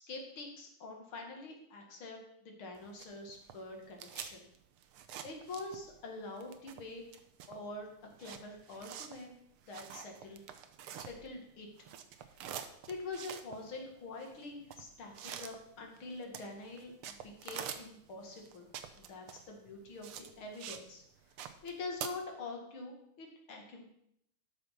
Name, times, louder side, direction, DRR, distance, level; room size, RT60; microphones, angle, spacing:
voice 1, 0.1-4.5 5.2-7.0 7.5-7.9 8.2-9.3 9.7-10.4 11.0-11.7 12.3-12.6 12.9-17.2 17.4-18.7 19.0-21.0 21.6-23.8, left 3 dB, 70° left, 2 dB, 2.8 m, -45 dB
sound 1, 2.8-6.1 6.3-11.5 11.8-20.9 21.2-22.1, right 9 dB, 85° right, 1.8 m, -47 dB
12.5 x 6.2 x 5.8 m, 0.74 s
omnidirectional pair, 2.3 m